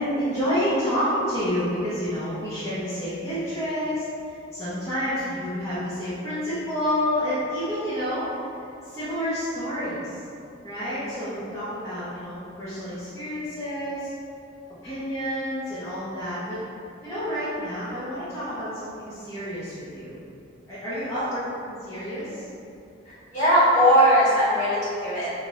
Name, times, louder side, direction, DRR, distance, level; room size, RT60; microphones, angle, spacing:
voice 1, 0.0-4.0 4.5-8.3 8.8-10.2 10.6-14.1 14.8-16.6 17.0-20.1 20.7-21.4 21.7-22.5, equal, 15° left, -16 dB, 0.8 m, -29 dB
voice 2, 23.0-25.3, equal, 35° left, -11 dB, 1.4 m, -20 dB
4.9 x 2.5 x 2.5 m, 2.6 s
head